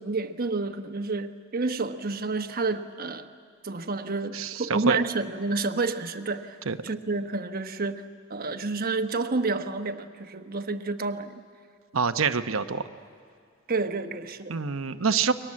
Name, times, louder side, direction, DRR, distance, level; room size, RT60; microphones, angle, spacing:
voice 1, 0.0-3.3 3.6-6.6 6.8-11.4 13.7-14.6, right 3 dB, 45° right, 1.1 m, -29 dB
voice 2, 4.3-5.0 6.7-6.8 11.9-12.8 14.5-15.3, right 5 dB, 80° right, 1.0 m, -26 dB
29.5 x 23.0 x 7.6 m
head